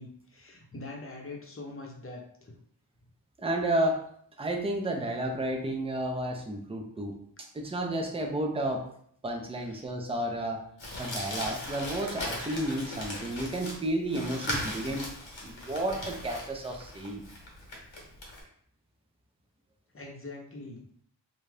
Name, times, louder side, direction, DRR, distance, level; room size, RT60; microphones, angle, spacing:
voice 1, 0.0-2.5 9.7-9.8 19.9-20.8, left 2 dB, 30° left, -1 dB, 0.7 m, -43 dB
voice 2, 3.4-4.0 4.4-8.9 9.2-10.7 11.0-15.1 15.4-17.2, right 1 dB, 15° right, 2 dB, 0.4 m, -32 dB
Crumpling crinkling, 10.8-18.4, left 1 dB, 85° left, 0.9 m, -38 dB
2.6 x 2.3 x 3.2 m, 0.63 s
wide cardioid pair, 60°, 45 cm